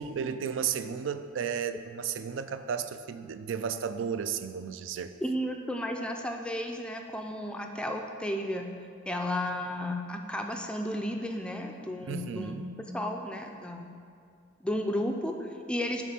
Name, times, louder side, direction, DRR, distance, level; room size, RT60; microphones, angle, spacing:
voice 1, 0.0-5.1 12.0-12.7, right 7 dB, 70° right, 11 dB, 0.3 m, -33 dB
voice 2, 5.2-8.7 9.1-13.9 14.6-16.0, left 1 dB, 5° left, 3 dB, 0.4 m, -33 dB
7.4 x 3.5 x 5.9 m, 2.2 s
head